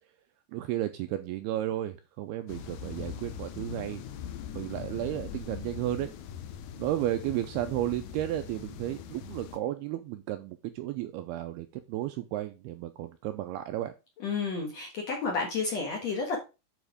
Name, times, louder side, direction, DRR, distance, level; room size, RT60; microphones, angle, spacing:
voice 1, 0.5-4.0 4.5-6.1 6.8-13.9, right 13 dB, 85° right, 9 dB, 2.3 m, -33 dB
sound 1, 2.5-9.6, left 8 dB, 85° left, 1.9 m, -41 dB
voice 2, 14.2-16.4, left 4 dB, 60° left, 1 dB, 1.9 m, -31 dB
9.3 x 4.4 x 4.9 m, 0.29 s
omnidirectional pair, 5.0 m